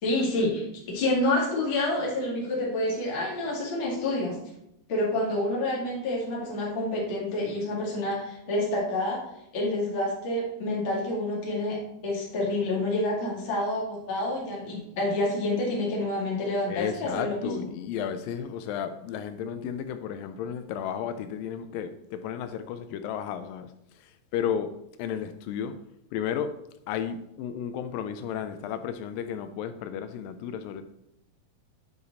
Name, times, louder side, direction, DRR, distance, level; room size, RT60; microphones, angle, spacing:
voice 1, 0.0-4.4 4.9-9.2 9.5-17.4, left 1 dB, 35° left, -4 dB, 2.5 m, -28 dB
voice 2, 16.7-24.7 25.0-25.8 26.1-26.6 26.9-30.8, left 8 dB, 80° left, 10 dB, 2.1 m, -33 dB
9.6 x 4.8 x 4.1 m, 0.80 s
omnidirectional pair, 4.4 m